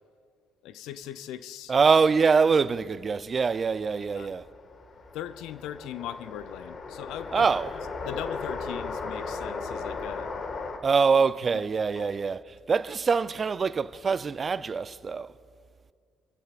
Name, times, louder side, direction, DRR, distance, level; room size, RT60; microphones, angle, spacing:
voice 1, 0.6-1.7 4.2-4.3 5.1-7.5 8.0-10.3 12.0-12.1, left 11 dB, 70° left, 0.5 m, -39 dB
voice 2, 1.7-4.4 7.3-7.7 10.8-15.3, right 5 dB, 40° right, 0.5 m, -24 dB
sound 1, 4.0-10.8, left 4 dB, 50° left, 1.7 m, -36 dB
30.0 x 15.5 x 2.4 m
hypercardioid pair, 55°, 0 cm